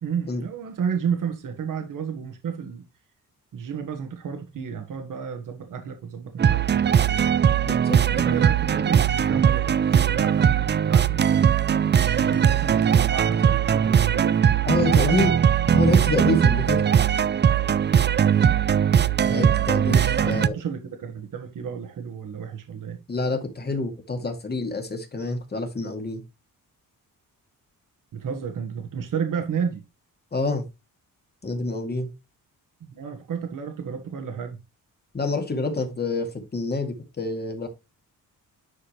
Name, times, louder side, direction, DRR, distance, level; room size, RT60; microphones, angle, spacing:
voice 1, 0.0-2.8 3.5-7.3 8.1-11.5 12.0-15.2 19.2-19.5 19.9-23.0 24.2-24.3 28.1-29.8 32.9-34.6, right 7 dB, 65° right, 1.6 m, -32 dB
sound 1, 6.4-20.5, right 8 dB, 30° right, 0.5 m, -20 dB
voice 2, 7.6-8.4 14.7-15.4 15.7-16.8 19.3-20.6 23.1-26.2 30.3-30.7 31.4-32.1 35.1-37.7, left 3 dB, 30° left, 2.2 m, -27 dB
11.0 x 4.9 x 3.2 m
cardioid pair, 120°, 35 cm